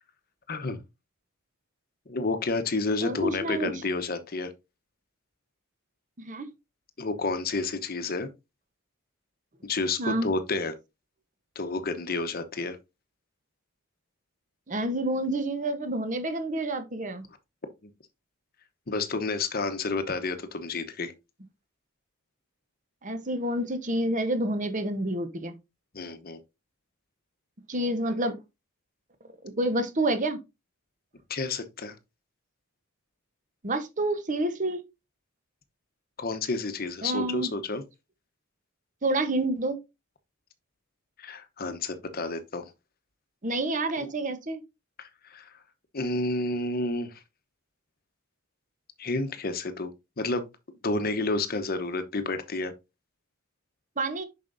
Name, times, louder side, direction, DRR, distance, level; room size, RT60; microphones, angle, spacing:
voice 1, 0.5-0.8 2.1-4.5 7.0-8.3 9.6-10.7 11.5-12.8 17.8-17.9 18.9-21.1 25.9-26.4 31.3-32.0 36.2-37.8 41.2-42.7 44.0-44.1 45.0-45.5 45.9-47.2 49.0-49.9 50.2-50.5 50.8-52.7, left 3 dB, 45° left, 0.9 m, -30 dB
voice 2, 3.0-3.7 6.2-6.5 10.0-10.3 14.7-17.2 23.0-25.6 27.7-28.4 29.6-30.4 33.6-34.8 37.0-37.5 39.0-39.8 43.4-44.6 54.0-54.2, right 1 dB, 35° right, 1.0 m, -28 dB
7.1 x 5.8 x 2.6 m
head